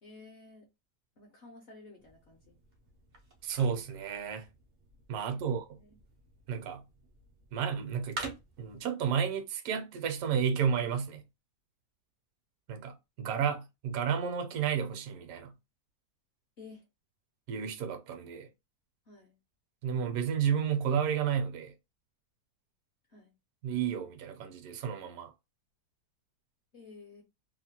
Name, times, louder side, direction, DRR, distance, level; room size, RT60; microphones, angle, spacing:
voice 1, 0.0-0.7 1.2-2.6 5.1-6.0 16.6-16.9 19.1-19.4 23.1-23.3 26.7-27.2, left 3 dB, 60° left, 0.8 m, -53 dB
sound 1, 2.0-8.8, right 2 dB, 90° right, 0.4 m, -49 dB
voice 2, 3.4-4.5 5.1-5.8 6.5-6.8 7.5-11.2 12.7-15.5 17.5-18.5 19.8-21.7 23.6-25.3, right 7 dB, 70° right, 1.0 m, -32 dB
2.8 x 2.1 x 2.8 m
omnidirectional pair, 1.7 m